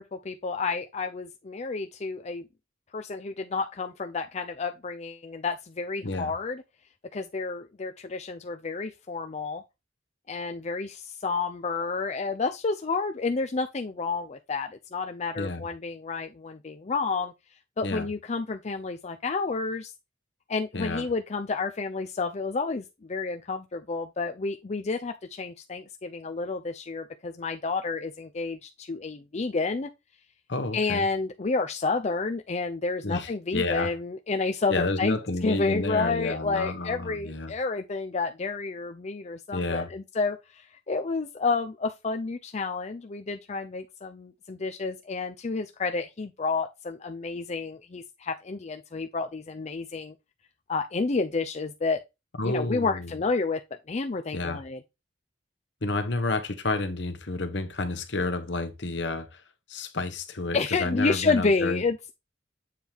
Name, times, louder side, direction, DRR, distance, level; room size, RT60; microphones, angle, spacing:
voice 1, 0.0-2.4 2.9-6.6 7.1-9.6 10.3-17.3 17.8-19.9 20.5-29.9 30.7-35.2 35.4-50.1 50.7-52.0 52.4-53.6 53.9-54.8 60.5-62.1, left 4 dB, 35° left, 0.5 m, -30 dB
voice 2, 15.4-15.7 17.8-18.1 20.7-21.0 30.5-31.1 33.0-33.9 34.7-37.5 39.5-39.9 52.4-53.1 54.3-54.6 55.8-59.4 59.7-61.8, left 2 dB, 65° left, 1.2 m, -30 dB
7.4 x 4.5 x 3.4 m
head